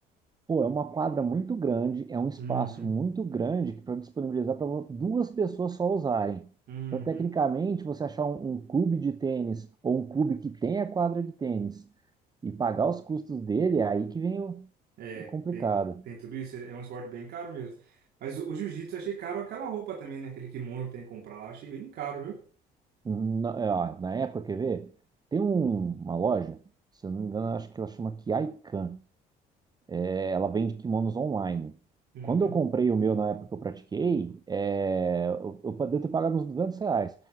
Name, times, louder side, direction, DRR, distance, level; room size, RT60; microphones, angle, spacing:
voice 1, 0.5-6.4 6.9-11.8 12.4-14.7 15.3-16.0 23.0-24.9 25.3-26.6 27.0-29.0 29.9-31.7 32.2-37.1, right 5 dB, 25° right, 0.6 m, -29 dB
voice 2, 2.4-2.9 6.7-7.3 15.0-15.7 16.1-22.4 32.1-32.5, right 7 dB, 70° right, 2.4 m, -37 dB
12.0 x 7.2 x 7.3 m
cardioid pair, 110°, 17 cm